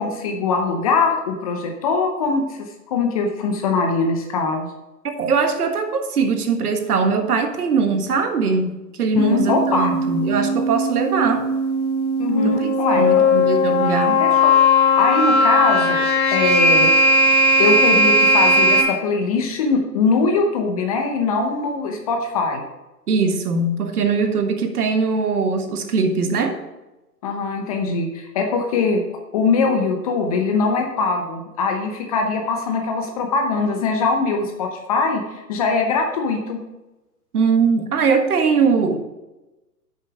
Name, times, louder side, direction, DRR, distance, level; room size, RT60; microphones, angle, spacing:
voice 1, 0.0-4.7 9.1-9.9 12.2-13.3 14.2-16.0 16.3-17.2 17.6-22.6 27.2-29.0 29.3-36.6, left 4 dB, 25° left, 4 dB, 0.7 m, -22 dB
voice 2, 5.0-11.4 12.4-14.2 23.1-26.6 37.3-39.0, right 5 dB, 65° right, 6 dB, 1.6 m, -21 dB
sound 1, 9.2-18.8, left 1 dB, 60° left, 2.1 m, -17 dB
8.9 x 6.6 x 4.9 m, 1.0 s
hypercardioid pair, 145°, 49 cm